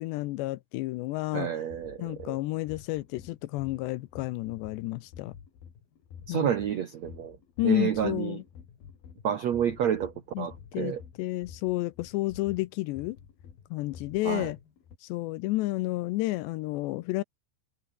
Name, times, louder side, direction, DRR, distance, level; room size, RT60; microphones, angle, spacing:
voice 1, 0.0-1.5 2.0-5.3 6.3-6.5 7.6-8.4 10.4-13.2 13.7-14.6 15.1-17.2, left 19 dB, 80° left, 2.8 m, -31 dB
voice 2, 1.3-2.4 6.3-7.4 7.6-8.4 9.2-11.0 14.2-14.5, right 9 dB, 85° right, 1.5 m, -30 dB
sound 1, 1.6-15.0, left 7 dB, 55° left, 4.8 m, -50 dB
omnidirectional pair, 5.3 m